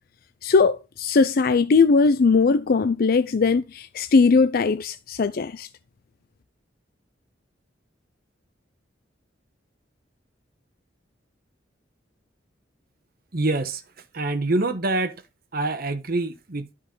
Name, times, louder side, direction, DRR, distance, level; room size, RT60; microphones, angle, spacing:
voice 1, 0.4-5.7, left 4 dB, 55° left, 0.4 m, -19 dB
voice 2, 13.3-15.2 15.5-16.7, right 2 dB, 55° right, 1.2 m, -26 dB
10.5 x 5.5 x 3.8 m
head